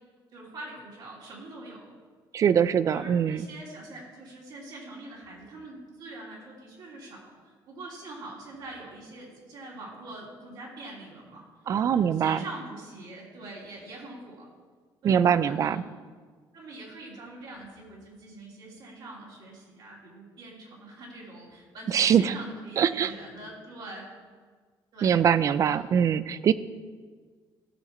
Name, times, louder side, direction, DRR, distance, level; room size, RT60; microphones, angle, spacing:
voice 1, 0.3-1.9 2.9-11.4 11.9-14.5 15.0-15.8 16.5-24.1 24.9-25.2 25.5-25.8, right 2 dB, 55° right, -4 dB, 3.1 m, -44 dB
voice 2, 2.3-3.5 11.7-12.4 15.0-15.8 21.9-22.3 22.8-23.1 25.0-26.5, right 8 dB, 40° right, 16 dB, 0.4 m, -23 dB
15.5 x 6.3 x 4.3 m, 1.5 s
cardioid pair, 155°, 9 cm